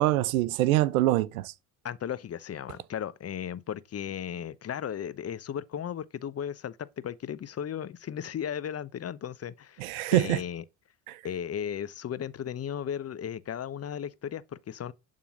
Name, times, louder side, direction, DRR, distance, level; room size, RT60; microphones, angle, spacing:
voice 1, 0.0-1.5 9.8-10.4 11.1-11.2, right 16 dB, 90° right, 0.8 m, -24 dB
voice 2, 1.8-10.6 11.2-14.9, left 9 dB, 35° left, 0.8 m, -35 dB
11.0 x 3.8 x 6.2 m
hypercardioid pair, 70°, 41 cm